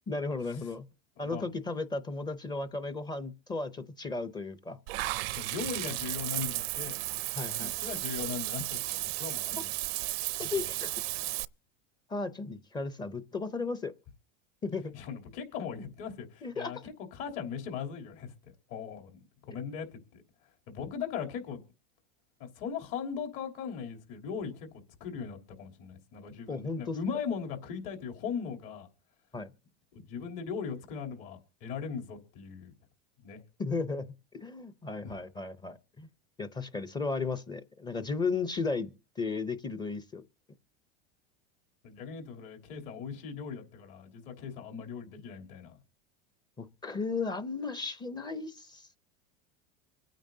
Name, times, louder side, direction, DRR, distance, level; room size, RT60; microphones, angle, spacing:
voice 1, 0.1-0.9 1.2-4.8 7.4-7.8 9.5-9.6 10.4-10.9 12.1-13.9 14.6-14.9 16.4-16.7 26.5-27.0 29.3-29.5 33.6-34.1 34.4-36.1 36.4-40.2 46.6-49.0, left 4 dB, 15° left, 0.5 m, -35 dB
voice 2, 1.2-1.5 5.4-7.0 7.5-9.8 10.4-10.5 14.9-18.3 18.7-19.2 19.5-20.2 20.7-21.6 22.5-28.9 29.9-32.7 33.2-33.4 35.0-35.2 41.8-45.8, left 6 dB, 65° left, 3.1 m, -39 dB
Water / Bathtub (filling or washing), 4.9-11.4, right 20 dB, 75° right, 0.6 m, -34 dB
25.0 x 9.0 x 2.7 m
supercardioid pair, 145°, 30 cm